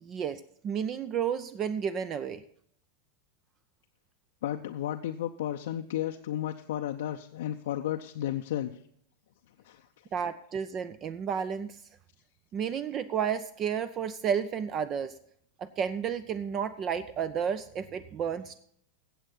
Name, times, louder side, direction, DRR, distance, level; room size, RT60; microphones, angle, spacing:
voice 1, 0.1-2.4 10.1-11.8 12.5-15.1 15.6-18.6, right 7 dB, 30° right, 15 dB, 0.5 m, -32 dB
voice 2, 4.4-8.8 9.6-9.8, left 11 dB, 55° left, 4 dB, 0.6 m, -33 dB
15.0 x 8.0 x 4.0 m, 0.67 s
figure-of-eight pair, 90°, 0 cm